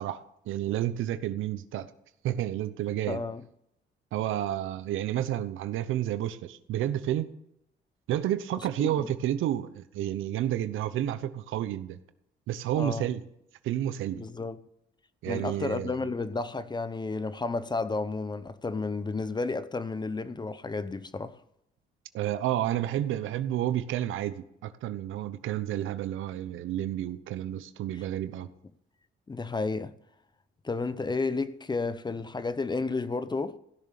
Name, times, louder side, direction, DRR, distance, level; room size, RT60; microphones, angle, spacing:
voice 1, 0.0-1.9 2.2-3.2 4.1-7.3 8.1-12.0 12.5-13.2 13.6-14.2 15.2-15.9 22.1-28.5, right 12 dB, 85° right, 0.9 m, -30 dB
voice 2, 3.1-3.4 8.8-9.1 12.7-13.1 14.2-14.6 15.3-21.4 27.9-28.0 29.3-29.9 30.6-33.6, left 3 dB, 20° left, 0.8 m, -32 dB
16.0 x 7.0 x 6.6 m
cardioid pair, 90°, 20 cm